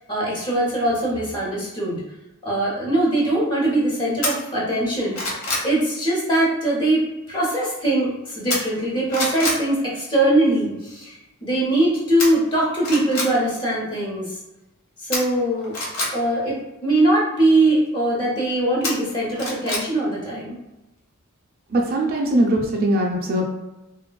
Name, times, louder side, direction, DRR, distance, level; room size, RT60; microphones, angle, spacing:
voice 1, 0.1-2.0 2.4-7.0 7.3-14.3 15.0-15.7 16.1-16.6 16.8-20.6, right 1 dB, 20° left, -5 dB, 0.8 m, -21 dB
sound 1, 4.2-4.3 4.8-5.7 8.5-8.8 9.1-9.6 12.2-12.3 12.8-13.3 15.1-16.1 18.8-19.8 20.2-20.3, left 2 dB, 85° left, 0.9 m, -25 dB
voice 2, 21.7-23.4, right 1 dB, 45° right, 0 dB, 0.4 m, -20 dB
3.1 x 2.2 x 2.2 m, 0.98 s
head